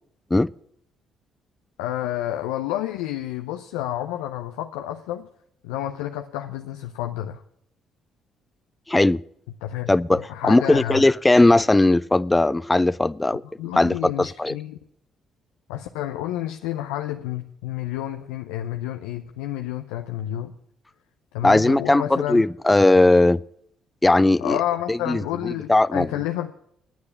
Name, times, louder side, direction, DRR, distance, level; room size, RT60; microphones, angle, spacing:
voice 1, 1.8-5.3 5.6-7.4 9.6-11.1 13.4-14.8 15.7-20.5 21.3-22.4 24.4-26.5, left 13 dB, 85° left, 0.6 m, -30 dB
voice 2, 8.9-9.2 9.9-13.4 13.8-14.6 21.4-23.4 24.0-24.6 24.9-26.1, left 2 dB, 15° left, 0.4 m, -18 dB
9.6 x 9.2 x 8.4 m
hypercardioid pair, 50°, 0 cm